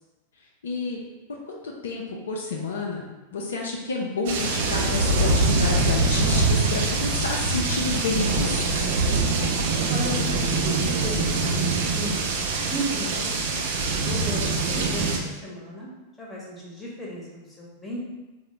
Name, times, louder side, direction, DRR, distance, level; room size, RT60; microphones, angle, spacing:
voice 1, 0.6-1.0 1.5-3.0 3.3-8.9, left 3 dB, 65° left, -1 dB, 0.4 m, -29 dB
sound 1, 4.3-15.2, right 3 dB, 55° right, 0.4 m, -24 dB
voice 2, 9.9-13.3 14.0-15.9 16.2-18.0, right 1 dB, 10° left, -5 dB, 0.9 m, -35 dB
3.7 x 2.1 x 3.2 m, 1.1 s
figure-of-eight pair, 90°, 0 cm